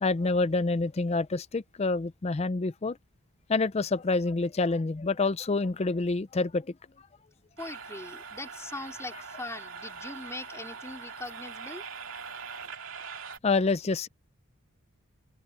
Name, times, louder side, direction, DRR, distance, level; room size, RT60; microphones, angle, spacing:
voice 1, 0.0-3.0 3.5-6.7 13.4-14.1, left 3 dB, 30° left, 0.4 m, -27 dB
voice 2, 7.6-11.8, left 2 dB, 15° left, 3.9 m, -41 dB
sound 1, 7.6-13.4, right 5 dB, 65° right, 2.7 m, -42 dB
open air
head